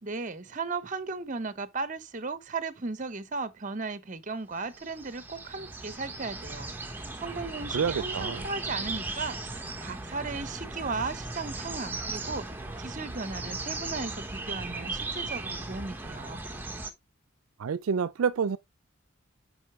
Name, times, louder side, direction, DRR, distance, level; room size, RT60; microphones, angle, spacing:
voice 1, 0.0-12.5 12.8-16.4, right 4 dB, 35° right, 0.9 m, -36 dB
sound 1, 4.7-16.9, right 3 dB, 10° right, 1.1 m, -37 dB
voice 2, 7.7-8.4 17.6-18.6, right 6 dB, 75° right, 0.4 m, -28 dB
8.1 x 5.5 x 3.1 m
head